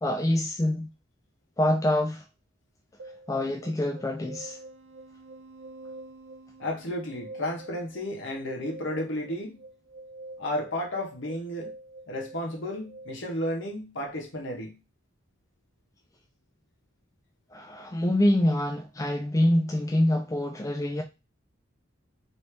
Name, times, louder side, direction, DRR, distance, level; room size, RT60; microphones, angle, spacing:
voice 1, 0.0-0.9 1.6-2.2 3.3-4.6 17.5-21.0, left 1 dB, 15° left, 0.3 m, -25 dB
sound 1, 3.0-13.1, right 2 dB, 85° right, 0.6 m, -46 dB
voice 2, 6.6-9.6 10.4-11.7 12.1-14.8, left 1 dB, 65° left, 1.1 m, -33 dB
3.1 x 2.7 x 3.2 m
head